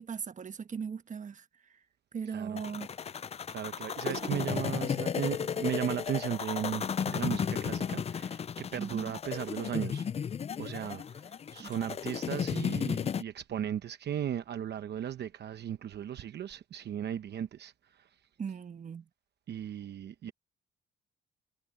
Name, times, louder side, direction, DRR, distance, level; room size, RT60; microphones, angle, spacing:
voice 1, 0.0-1.5 2.1-2.9 4.1-4.6 8.8-9.2 11.6-11.7 18.4-19.0, right 6 dB, 40° right, 1.2 m, -38 dB
sound 1, 2.6-13.2, left 7 dB, 30° left, 0.4 m, -34 dB
voice 2, 3.5-10.1 10.6-18.1 19.5-20.3, right 10 dB, 60° right, 0.9 m, -36 dB
cardioid pair, 90°, 20 cm